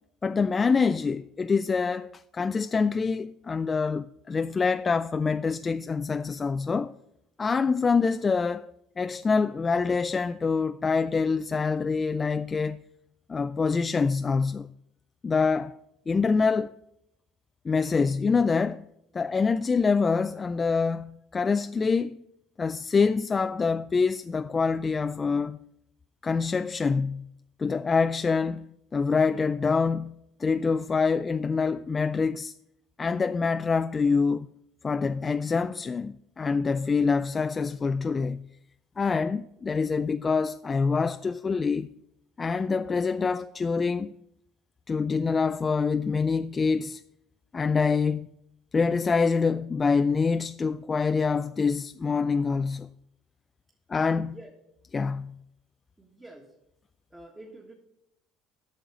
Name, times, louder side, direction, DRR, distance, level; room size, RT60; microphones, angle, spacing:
voice 1, 0.2-6.9 7.4-8.7 9.0-12.8 13.3-14.7 15.2-15.7 16.1-16.7 17.7-18.8 19.1-22.2 22.6-25.6 26.2-27.3 27.6-28.7 28.9-30.1 30.4-32.5 33.0-34.5 34.8-38.5 39.0-41.9 42.4-44.1 44.9-47.0 47.5-48.3 48.7-52.9 53.9-54.3 54.9-55.4, left 5 dB, 25° left, 0.3 m, -25 dB
voice 2, 54.2-54.5 56.0-56.6 57.1-57.7, right 1 dB, 10° right, 1.6 m, -47 dB
9.0 x 6.4 x 8.1 m
supercardioid pair, 105°, 0 cm